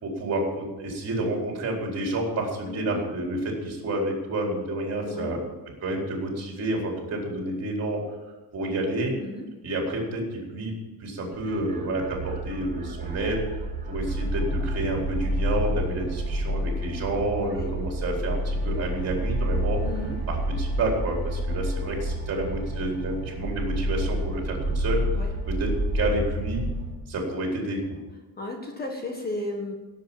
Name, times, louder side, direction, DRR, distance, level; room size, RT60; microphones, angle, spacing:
voice 1, 0.0-5.4 5.8-8.0 8.5-9.1 9.6-10.7 11.0-13.4 13.9-19.8 20.3-25.0 25.5-26.6 27.1-28.0, right 1 dB, 40° right, 0 dB, 4.4 m, -29 dB
voice 2, 2.7-3.0 5.0-5.4 9.2-9.5 17.4-17.7 19.8-20.2 25.1-25.3 28.4-29.7, left 2 dB, 25° left, 2 dB, 1.7 m, -34 dB
sound 1, 11.3-26.9, right 1 dB, 20° right, 3.4 m, -29 dB
17.0 x 8.1 x 7.3 m, 1.2 s
cardioid pair, 175°, 40 cm